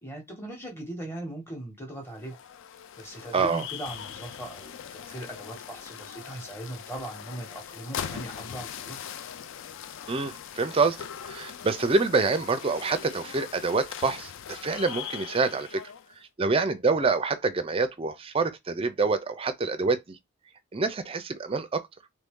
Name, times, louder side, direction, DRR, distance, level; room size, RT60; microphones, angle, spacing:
voice 1, 0.0-2.4 3.0-9.0, right 1 dB, 10° left, 1.2 m, -39 dB
sound 1, 2.1-16.1, left 8 dB, 60° left, 0.3 m, -41 dB
voice 2, 3.3-3.7 10.1-15.8 16.4-20.2 20.7-21.8, right 4 dB, 25° right, 0.4 m, -26 dB
3.1 x 2.7 x 3.6 m
head